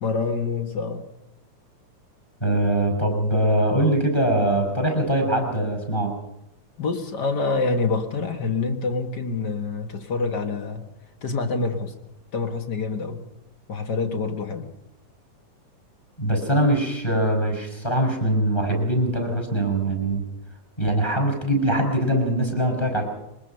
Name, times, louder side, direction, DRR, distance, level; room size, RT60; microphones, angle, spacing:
voice 1, 0.0-1.1 6.8-10.9 11.2-11.9 12.3-13.3 13.7-14.7, left 4 dB, 45° left, 6 dB, 1.5 m, -26 dB
voice 2, 2.4-6.1 16.2-20.2 20.8-23.0, right 1 dB, 5° left, 3 dB, 5.2 m, -22 dB
23.5 x 20.5 x 5.7 m, 0.90 s
omnidirectional pair, 3.8 m